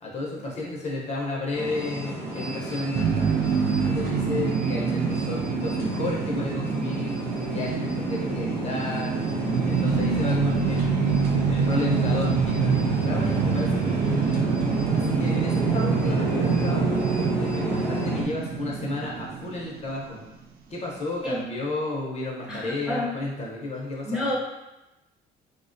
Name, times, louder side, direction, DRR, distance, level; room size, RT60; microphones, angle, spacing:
voice 1, 0.0-3.4 3.9-7.2 7.5-9.2 9.6-14.4 14.9-20.2 20.7-24.3, left 2 dB, 40° left, -3 dB, 0.6 m, -33 dB
sound 1, 1.5-18.2, right 1 dB, 85° right, 0.8 m, -31 dB
sound 2, 2.9-20.1, right 5 dB, 60° right, 0.4 m, -26 dB
voice 2, 22.5-23.1 24.0-24.3, left 1 dB, 5° right, -5 dB, 0.7 m, -29 dB
3.2 x 2.1 x 2.5 m, 0.97 s
cardioid pair, 110°, 17 cm